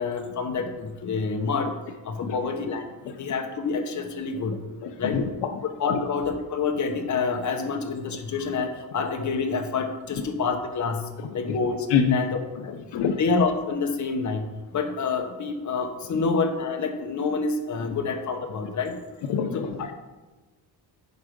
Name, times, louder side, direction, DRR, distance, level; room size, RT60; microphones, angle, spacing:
voice 1, 0.0-1.7 2.0-2.9 3.2-4.6 5.0-5.2 5.8-11.7 12.1-12.3 12.6-12.8 13.2-19.0 19.5-19.9, left 4 dB, 45° left, 5 dB, 1.1 m, -27 dB
voice 2, 4.8-5.5 5.9-6.0 11.2-11.6 11.9-12.2 12.6-13.2 16.1-16.2 17.8-17.9 19.2-19.9, left 7 dB, 80° left, 6 dB, 0.8 m, -27 dB
11.0 x 4.7 x 5.2 m, 1.2 s
cardioid pair, 135°, 41 cm